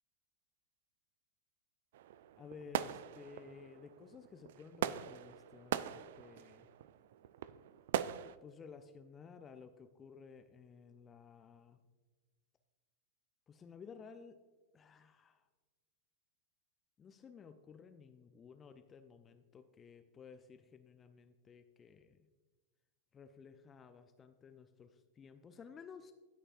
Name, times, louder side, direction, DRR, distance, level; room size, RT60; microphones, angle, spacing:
sound 1, 1.9-8.4, right 11 dB, 55° right, 0.4 m, -41 dB
voice 1, 2.4-6.7 8.4-11.8 13.5-14.4 14.7-15.5 17.0-22.2 23.1-26.1, left 6 dB, 20° left, 8 dB, 0.6 m, -55 dB
17.5 x 6.5 x 2.5 m, 1.3 s
figure-of-eight pair, 90°, 0 cm